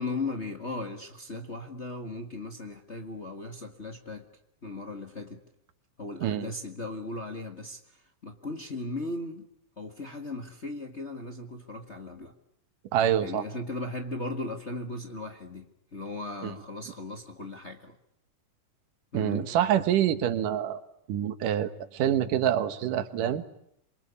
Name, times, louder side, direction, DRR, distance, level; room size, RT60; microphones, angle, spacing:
voice 1, 0.0-4.3 4.6-5.4 6.0-9.4 9.8-12.3 13.2-17.9 19.1-19.5, left 2 dB, 30° left, 4 dB, 1.4 m, -37 dB
voice 2, 6.2-6.5 12.9-13.4 16.4-16.5 19.1-20.8 21.1-23.4, right 10 dB, 85° right, 12 dB, 3.0 m, -26 dB
26.5 x 23.5 x 8.3 m, 0.76 s
omnidirectional pair, 3.6 m